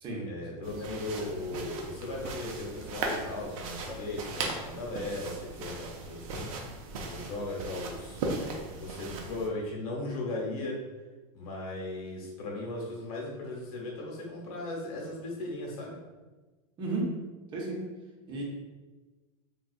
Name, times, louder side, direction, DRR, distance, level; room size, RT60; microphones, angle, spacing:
voice 1, 0.3-6.5 7.0-10.8 11.3-16.0, left 2 dB, 80° left, -2 dB, 1.1 m, -37 dB
sound 1, 0.6-9.5, right 3 dB, 70° right, 0.6 m, -38 dB
voice 2, 16.8-17.1 17.5-17.8 18.3-18.4, right 2 dB, 25° right, -3 dB, 0.7 m, -33 dB
3.7 x 2.4 x 2.4 m, 1.2 s
supercardioid pair, 150°, 19 cm